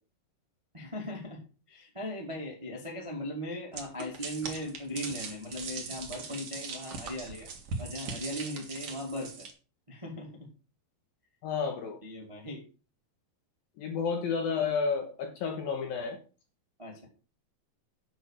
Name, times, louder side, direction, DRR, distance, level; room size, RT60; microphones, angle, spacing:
voice 1, 0.7-1.4 1.7-7.5 7.8-9.5 9.9-10.5 12.0-12.6 16.8-17.1, left 1 dB, 15° right, -1 dB, 1.1 m, -38 dB
sound 1, 3.7-9.5, right 4 dB, 55° right, 1.6 m, -40 dB
voice 2, 11.4-12.0 13.8-16.2, left 5 dB, 65° left, 4 dB, 2.6 m, -31 dB
9.0 x 6.0 x 6.6 m, 0.36 s
omnidirectional pair, 5.3 m